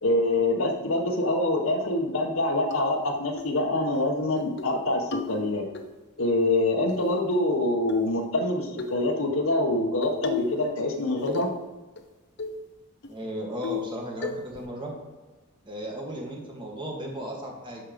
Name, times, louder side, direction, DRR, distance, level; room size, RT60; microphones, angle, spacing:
voice 1, 0.0-5.6 6.2-11.5, left 1 dB, 80° left, 2 dB, 1.3 m, -25 dB
sound 1, 2.7-2.8 3.4-3.6 3.9-4.0 4.4-4.7 5.1-5.8 6.9-7.5 7.9-8.2 8.8-9.0 10.0-10.6 10.9-11.6 12.0-12.1 12.4-12.6 13.0-13.1 13.6-13.9 14.2-14.6, left 6 dB, 55° left, 0.8 m, -34 dB
voice 2, 13.1-14.9 15.7-17.8, equal, 25° right, -1 dB, 1.9 m, -35 dB
8.7 x 6.5 x 5.3 m, 1.2 s
head